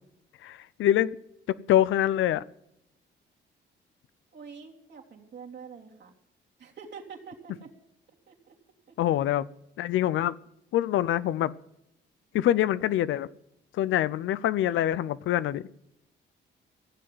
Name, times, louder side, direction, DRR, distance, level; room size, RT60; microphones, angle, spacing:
voice 1, 0.4-1.2 1.7-2.4 9.0-9.5 9.8-10.4 10.7-11.5 12.3-13.3 13.8-15.6, left 12 dB, 80° left, 0.6 m, -25 dB
voice 2, 4.3-6.1 6.6-7.7 8.3-8.6 8.9-9.0, right 6 dB, 60° right, 3.2 m, -46 dB
15.5 x 7.8 x 9.3 m
cardioid pair, 90°, 20 cm